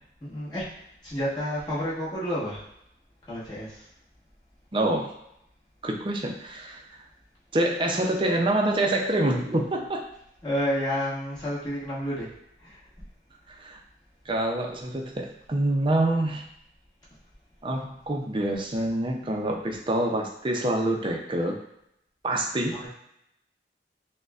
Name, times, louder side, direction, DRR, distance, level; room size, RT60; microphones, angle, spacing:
voice 1, 0.2-2.7 3.3-3.9 10.4-13.1 17.1-17.2 22.7-22.9, equal, 25° left, -9 dB, 1.3 m, -31 dB
voice 2, 4.7-5.1 5.8-6.8 7.5-10.1 13.5-13.8 14.3-16.4 17.6-21.6 22.2-22.8, right 1 dB, 30° right, 2 dB, 0.5 m, -26 dB
6.3 x 2.2 x 2.4 m, 0.79 s
head